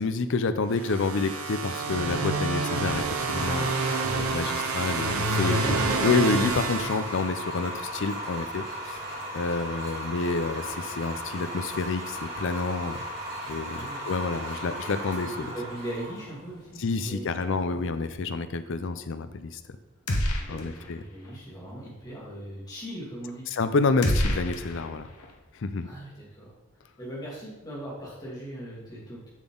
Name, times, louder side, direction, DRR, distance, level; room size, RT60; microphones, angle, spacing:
voice 1, 0.0-3.7 4.2-5.8 6.0-9.0 9.3-13.0 13.5-15.5 16.8-19.6 20.5-21.0 23.5-25.1 25.5-25.9, left 4 dB, 55° left, 10 dB, 0.5 m, -28 dB
sound 1, 0.7-7.6, right 3 dB, 70° right, 0.9 m, -28 dB
sound 2, 3.2-18.1, equal, 55° right, 2.3 m, -37 dB
voice 2, 5.4-6.1 13.7-14.0 15.5-17.4 17.7-17.9 20.3-23.5 25.8-26.5 27.0-29.3, right 1 dB, 15° left, -6 dB, 2.3 m, -39 dB
sound 3, 20.1-21.0 21.2-21.4 24.0-25.3, equal, 85° left, 1.0 m, -28 dB
7.1 x 6.0 x 3.8 m, 1.1 s
head